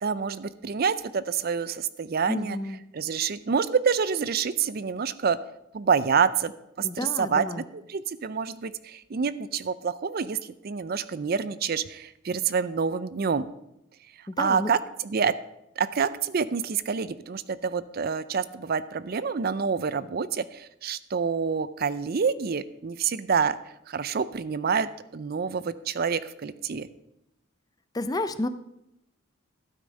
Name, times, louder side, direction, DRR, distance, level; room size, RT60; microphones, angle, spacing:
voice 1, 0.0-2.6 2.9-5.4 5.7-6.5 6.8-7.6 7.9-13.5 14.4-15.3 15.8-23.6 23.9-26.9, right 6 dB, 45° right, 16 dB, 0.4 m, -27 dB
voice 2, 2.3-2.8 6.8-7.6 14.3-14.7 27.9-28.5, left 2 dB, 20° left, 12 dB, 0.4 m, -30 dB
12.5 x 9.0 x 5.3 m, 0.86 s
head